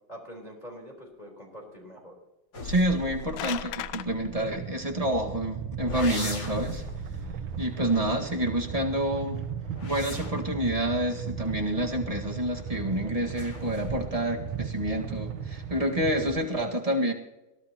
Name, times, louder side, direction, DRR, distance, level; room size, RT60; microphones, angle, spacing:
voice 1, 0.1-2.1, equal, 20° left, -2 dB, 4.1 m, -44 dB
sound 1, 2.5-5.3 5.8-8.9 9.5-12.5 13.3-14.2 14.6-15.1, left 2 dB, 50° left, 2.9 m, -41 dB
voice 2, 2.6-6.8 7.6-9.4 9.8-17.1, right 1 dB, 20° right, 1 dB, 1.7 m, -28 dB
sound 2, 2.9-4.1, left 12 dB, 80° left, 1.4 m, -36 dB
sound 3, 4.0-16.3, right 7 dB, 75° right, 1.9 m, -36 dB
22.5 x 17.0 x 3.0 m, 0.98 s
omnidirectional pair, 2.3 m